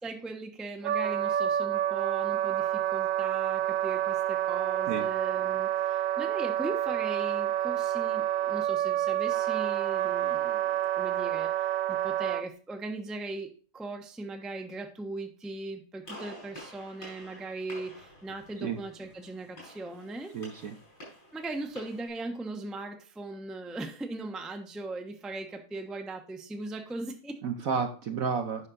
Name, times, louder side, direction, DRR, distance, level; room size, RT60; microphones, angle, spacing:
voice 1, 0.0-11.5 11.9-13.5 13.7-20.3 21.3-27.4, right 2 dB, ahead, 4 dB, 0.6 m, -39 dB
Wind instrument woodwind instrument, 0.8-12.4, right 12 dB, 80° right, 1.3 m, -28 dB
Gunshot gunfire, 16.0-22.1, left 1 dB, 80° left, 6.1 m, -49 dB
voice 2, 20.3-20.7 27.4-28.7, right 5 dB, 60° right, 6 dB, 1.0 m, -31 dB
9.8 x 5.9 x 3.9 m, 0.39 s
omnidirectional pair, 2.0 m